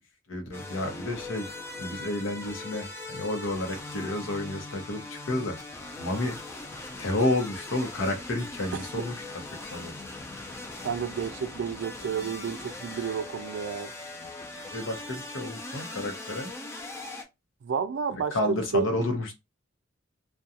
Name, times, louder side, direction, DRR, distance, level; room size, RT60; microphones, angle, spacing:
voice 1, 0.3-1.5 1.8-5.6 6.0-6.4 7.0-9.4 9.7-9.9 14.7-16.5 18.1-19.3, left 1 dB, 90° left, 0.7 m, -30 dB
sound 1, 0.5-17.2, left 2 dB, 15° left, 0.4 m, -40 dB
voice 2, 10.8-13.9 17.6-18.9, right 5 dB, 65° right, 0.3 m, -31 dB
2.4 x 2.2 x 2.7 m
head